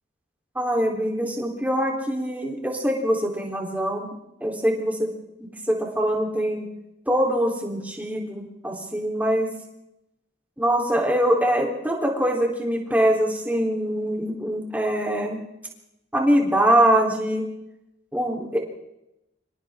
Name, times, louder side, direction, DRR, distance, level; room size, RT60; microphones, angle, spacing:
voice 1, 0.6-4.1 4.4-5.1 5.4-6.7 7.1-9.5 10.6-15.4 16.1-17.4 18.1-18.6, equal, 10° right, 0 dB, 3.7 m, -23 dB
30.0 x 26.0 x 3.7 m, 0.87 s
head